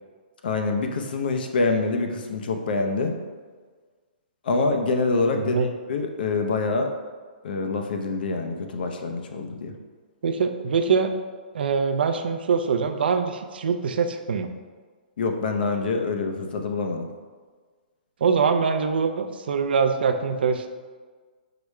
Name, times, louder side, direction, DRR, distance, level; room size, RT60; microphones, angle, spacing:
voice 1, 0.4-3.1 4.4-5.5 5.9-6.9 7.4-9.7 15.2-17.1, left 3 dB, 70° left, 4 dB, 0.6 m, -25 dB
voice 2, 5.3-5.7 10.2-11.1 11.5-14.5 18.2-20.7, right 5 dB, 75° right, 7 dB, 0.4 m, -23 dB
4.8 x 2.1 x 4.7 m, 1.5 s
hypercardioid pair, 150°, 5 cm